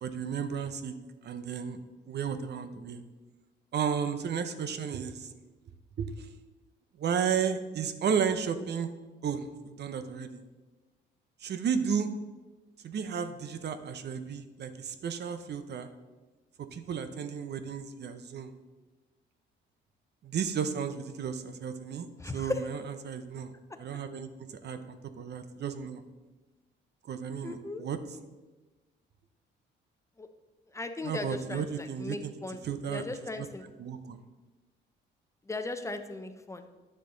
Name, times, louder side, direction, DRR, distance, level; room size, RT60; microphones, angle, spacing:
voice 1, 0.0-0.9 1.2-1.8 2.0-3.0 3.7-5.3 6.0-6.3 7.0-8.9 9.2-10.4 11.4-12.1 12.8-15.9 16.6-18.5 20.2-23.5 23.8-26.0 27.1-28.0 31.0-32.3 32.6-33.0 33.8-34.2, right 7 dB, 55° right, 10 dB, 0.8 m, -33 dB
voice 2, 22.2-22.6 27.4-27.8 30.2-30.3 30.7-32.6 32.9-33.7 35.5-36.7, left 2 dB, 15° left, 7 dB, 0.8 m, -37 dB
9.9 x 6.6 x 3.9 m, 1.2 s
cardioid pair, 90°, 20 cm